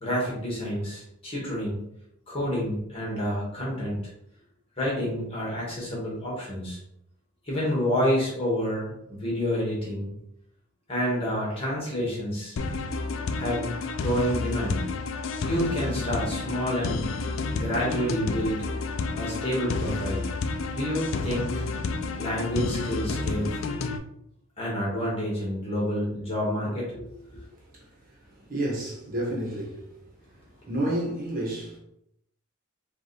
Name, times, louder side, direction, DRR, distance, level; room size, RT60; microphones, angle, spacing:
voice 1, 0.0-1.8 2.3-4.0 4.8-6.8 7.4-10.1 10.9-12.5 13.3-14.8 15.4-17.1 17.5-18.7 19.1-20.2 20.7-21.6 22.2-23.6 24.6-27.4, equal, 25° left, 1.6 m, -29 dB
sound 1, 12.6-24.0, left 3 dB, 65° left, 0.4 m, -30 dB
voice 2, 28.5-29.9 30.7-31.8, right 1 dB, 40° right, 1.3 m, -29 dB
5.2 x 2.6 x 3.3 m
head